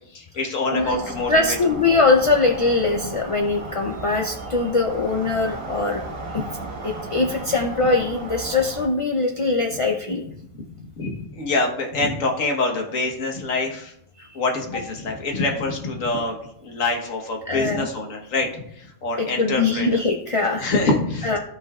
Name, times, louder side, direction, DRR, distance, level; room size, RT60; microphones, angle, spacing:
voice 1, 0.1-1.6 10.5-10.6 10.9-13.9 14.3-20.0 20.6-21.4, left 3 dB, 75° left, 2 dB, 1.7 m, -25 dB
voice 2, 0.7-1.0 1.3-6.0 6.8-10.2 17.5-17.9 19.2-20.6 21.2-21.4, left 3 dB, 45° left, 1 dB, 0.4 m, -21 dB
sound 1, 0.8-8.9, right 2 dB, 85° right, 1.7 m, -35 dB
13.5 x 5.4 x 2.4 m, 0.72 s
omnidirectional pair, 1.4 m